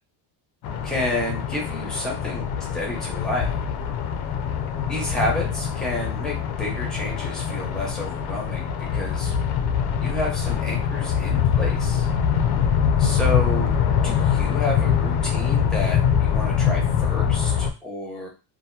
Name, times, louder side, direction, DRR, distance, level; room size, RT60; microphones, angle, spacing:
sound 1, 0.6-17.7, left 8 dB, 60° left, 0.5 m, -23 dB
voice 1, 0.8-3.6 4.9-9.3 10.0-12.1 13.0-13.7 14.0-18.3, left 1 dB, ahead, -2 dB, 0.8 m, -30 dB
2.7 x 2.2 x 2.2 m, 0.30 s
cardioid pair, 145°, 44 cm